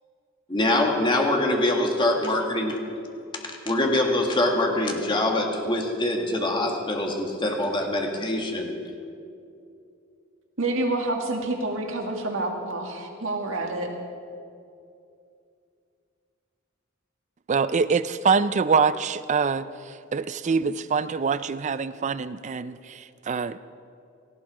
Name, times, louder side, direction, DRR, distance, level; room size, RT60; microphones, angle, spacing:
voice 1, 0.5-2.8 3.7-8.7, left 1 dB, 25° left, 1 dB, 1.8 m, -24 dB
voice 2, 10.6-13.9, right 2 dB, 75° right, 2 dB, 2.1 m, -28 dB
voice 3, 17.5-23.6, right 5 dB, 35° right, 15 dB, 0.4 m, -25 dB
18.0 x 15.5 x 4.9 m, 2.5 s
head